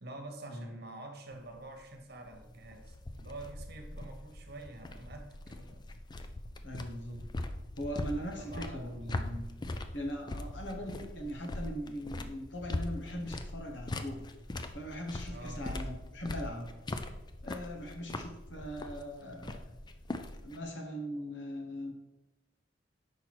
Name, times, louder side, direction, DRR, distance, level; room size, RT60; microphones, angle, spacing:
voice 1, 0.0-5.9 8.4-9.5 15.2-15.7, right 2 dB, 60° right, 4 dB, 1.1 m, -47 dB
sound 1, 1.3-20.6, left 2 dB, 25° left, 0.4 m, -41 dB
voice 2, 6.6-7.2 7.8-9.4 9.9-14.2 14.7-16.7 17.4-19.6 20.4-21.9, equal, 85° left, 2 dB, 1.3 m, -40 dB
5.4 x 4.3 x 6.1 m, 1.0 s
head